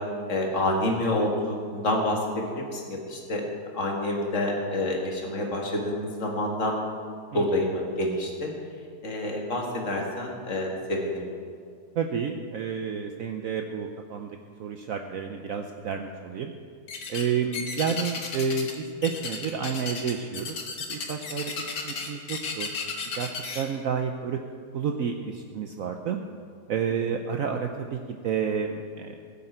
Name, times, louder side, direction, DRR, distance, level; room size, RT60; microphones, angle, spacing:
voice 1, 0.3-3.5 3.7-6.8 7.3-8.5 9.0-11.3, left 1 dB, 45° left, 0 dB, 2.1 m, -28 dB
voice 2, 11.9-14.3 14.6-16.5 17.1-20.6 20.9-21.5 21.8-22.7 23.2-24.4 24.7-26.2 26.7-29.2, right 6 dB, 65° right, 4 dB, 1.0 m, -30 dB
sound 1, 16.9-17.3 17.5-18.8 19.0-23.6, left 5 dB, 60° left, 1.7 m, -34 dB
20.0 x 7.9 x 4.4 m, 2.1 s
omnidirectional pair, 1.8 m